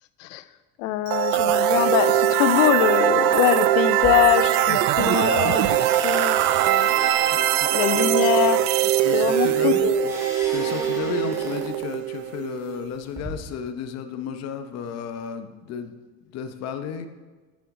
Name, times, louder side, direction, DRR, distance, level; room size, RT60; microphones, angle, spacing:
voice 1, 0.8-5.8 6.0-6.4 6.6-6.9 7.7-8.6 9.1-10.1, left 13 dB, 75° left, 14 dB, 0.6 m, -23 dB
sound 1, 1.1-12.9, right 12 dB, 50° right, 0.5 m, -21 dB
sound 2, 3.9-4.8 5.1-11.9 12.7-13.3, equal, 5° right, 2.2 m, -39 dB
voice 2, 7.2-8.2 9.0-9.9 10.5-15.9 16.2-17.1, left 6 dB, 40° left, 8 dB, 0.8 m, -33 dB
11.0 x 7.1 x 3.7 m, 1.3 s
supercardioid pair, 130°, 39 cm